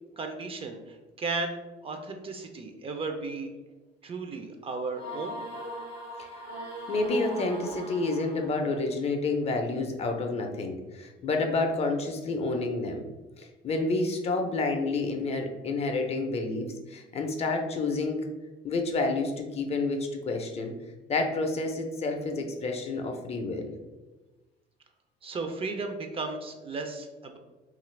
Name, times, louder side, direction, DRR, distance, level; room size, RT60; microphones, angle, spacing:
voice 1, 0.2-3.5 4.0-5.4 25.2-27.4, right 3 dB, 35° right, 5 dB, 0.4 m, -35 dB
sound 1, 4.9-8.8, right 1 dB, 90° right, 0.8 m, -39 dB
voice 2, 6.9-13.0 13.4-18.3 18.6-20.7 21.1-23.7, left 3 dB, 40° left, 4 dB, 0.4 m, -29 dB
2.7 x 2.4 x 3.1 m, 1.2 s
cardioid pair, 110°, 17 cm